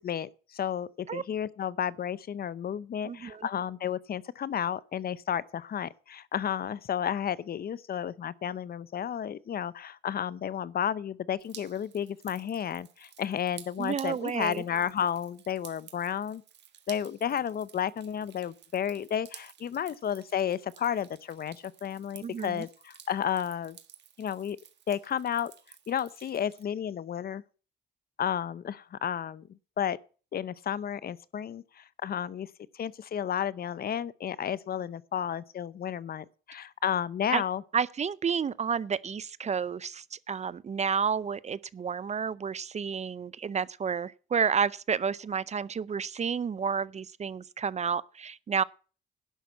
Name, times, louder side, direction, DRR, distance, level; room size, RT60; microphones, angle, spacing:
voice 1, 0.0-16.4 16.9-23.8 24.2-24.6 24.9-25.5 25.9-27.4 28.2-29.5 29.8-30.0 30.3-32.5 32.7-37.6, left 9 dB, 50° left, 0.7 m, -32 dB
voice 2, 3.0-3.5 13.8-14.6 22.2-22.6 37.3-37.4 37.7-48.6, right 6 dB, 35° right, 0.5 m, -30 dB
Drip, 11.4-26.6, right 9 dB, 60° right, 1.6 m, -53 dB
11.5 x 6.0 x 8.1 m
cardioid pair, 90°, 20 cm